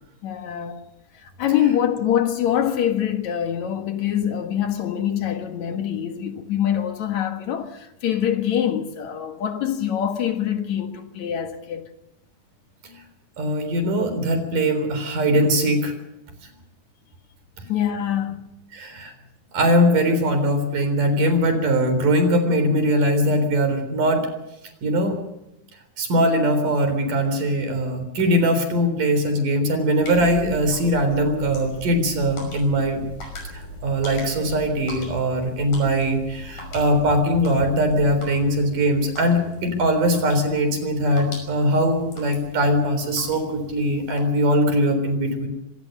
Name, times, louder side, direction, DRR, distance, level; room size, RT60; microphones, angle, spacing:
voice 1, 0.2-0.8 1.1-11.9 17.7-18.5 36.6-36.7, left 10 dB, 65° left, 2.9 m, -24 dB
voice 2, 13.4-15.9 18.7-19.1 19.5-24.2 24.8-25.2 26.0-33.0 33.5-45.5, equal, 90° right, 5.5 m, -21 dB
sound 1, 30.0-44.2, left 1 dB, 85° left, 7.3 m, -39 dB
25.0 x 18.0 x 6.7 m
omnidirectional pair, 3.6 m